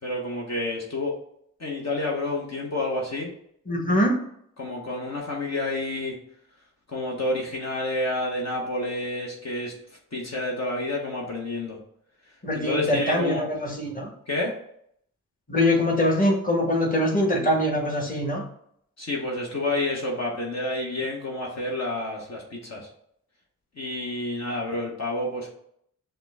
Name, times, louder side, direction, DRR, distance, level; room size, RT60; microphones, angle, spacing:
voice 1, 0.0-1.1 1.6-3.3 4.6-6.1 6.9-11.8 12.5-13.5 14.3-14.5 19.0-22.9 23.8-25.5, left 2 dB, 50° left, -2 dB, 1.1 m, -29 dB
voice 2, 3.7-4.2 12.4-14.1 15.5-18.4, left 1 dB, 25° left, -1 dB, 1.3 m, -23 dB
5.7 x 2.2 x 3.5 m, 0.69 s
cardioid pair, 55°, 34 cm